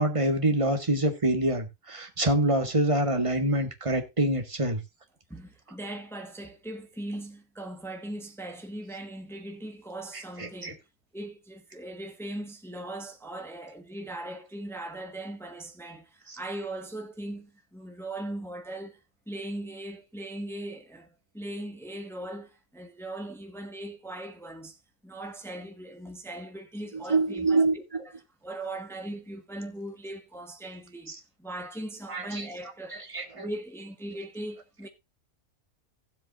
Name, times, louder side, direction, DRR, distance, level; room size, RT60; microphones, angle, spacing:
voice 1, 0.0-4.8 10.4-10.7 16.3-16.4 27.1-27.7 32.1-32.4 33.1-33.5, right 1 dB, 20° right, 1.7 m, -25 dB
voice 2, 5.3-10.8 11.1-28.1 28.4-33.0 33.3-34.9, right 1 dB, ahead, 1.3 m, -39 dB
16.0 x 7.8 x 2.6 m
omnidirectional pair, 1.5 m